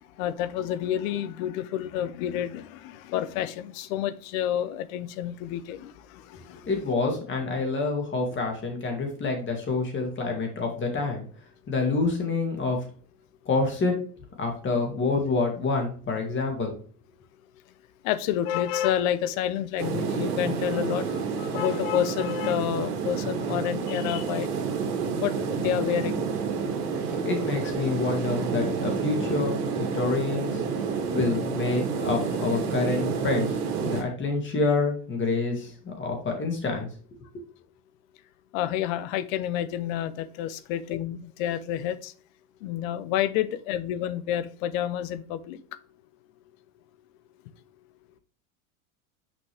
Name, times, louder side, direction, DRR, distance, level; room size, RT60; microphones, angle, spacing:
voice 1, 0.0-6.7 18.0-24.5 25.2-26.2 27.1-27.2 38.5-42.1 42.6-45.6, left 11 dB, 65° left, 0.8 m, -29 dB
voice 2, 6.6-11.2 11.7-12.8 13.5-14.0 14.4-16.8 27.0-29.6 29.9-30.6 31.1-36.9 37.3-37.5, left 3 dB, 25° left, 2.1 m, -27 dB
sound 1, 19.8-34.0, right 5 dB, 85° right, 1.9 m, -29 dB
6.2 x 5.3 x 3.4 m
supercardioid pair, 125°, 44 cm